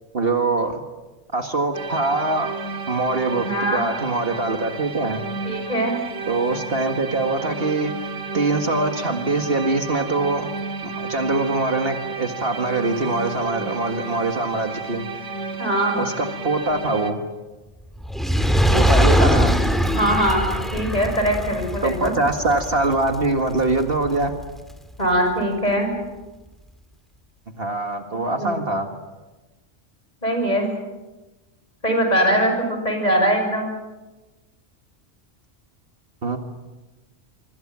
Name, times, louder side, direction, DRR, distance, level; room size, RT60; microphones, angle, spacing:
voice 1, 0.1-0.8 1.3-2.5 2.9-5.2 6.3-7.9 8.3-10.5 10.8-15.1 16.0-17.2 18.7-19.6 21.8-24.3 25.0-25.1 27.6-28.9 36.2-36.4, right 2 dB, 50° right, 5 dB, 2.1 m, -23 dB
sound 1, 1.7-17.1, right 4 dB, 80° right, 2.7 m, -32 dB
voice 2, 3.3-3.8 5.4-6.0 15.6-16.0 18.7-18.8 19.1-19.4 19.9-20.5 20.7-22.1 25.0-26.0 28.1-28.6 30.2-30.7 31.8-33.7, right 1 dB, 35° left, 3 dB, 6.6 m, -22 dB
Fire, 18.0-24.4 25.1-25.2, equal, ahead, 2.2 m, -21 dB
25.5 x 25.0 x 7.5 m, 1.1 s
omnidirectional pair, 1.3 m